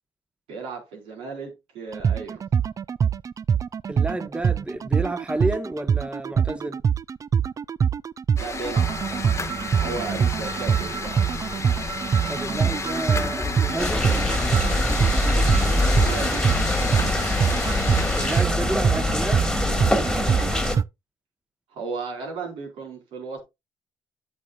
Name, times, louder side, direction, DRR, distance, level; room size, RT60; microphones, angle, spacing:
voice 1, 0.5-2.4 8.4-11.3 15.9-16.4 21.7-23.4, right 4 dB, 85° right, 4.6 m, -35 dB
sound 1, 1.9-20.8, right 7 dB, 35° right, 0.3 m, -24 dB
voice 2, 3.9-6.8 12.3-14.1 18.1-19.5, right 1 dB, 10° right, 1.0 m, -30 dB
sound 2, 8.4-18.4, left 4 dB, 30° left, 1.2 m, -32 dB
sound 3, 13.8-20.8, left 1 dB, 5° left, 1.9 m, -24 dB
10.0 x 8.3 x 2.4 m
cardioid pair, 75°, 9 cm